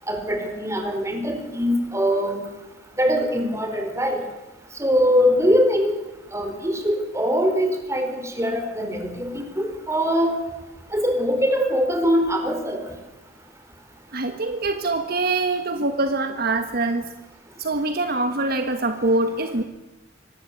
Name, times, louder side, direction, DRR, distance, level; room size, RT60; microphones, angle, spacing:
voice 1, 0.1-2.4 3.0-4.2 4.8-5.9 6.3-10.3 10.9-12.8, equal, 15° right, 5 dB, 4.8 m, -22 dB
voice 2, 14.1-17.1 17.6-19.6, right 2 dB, 55° right, 7 dB, 1.6 m, -24 dB
25.0 x 19.0 x 8.4 m, 1.1 s
head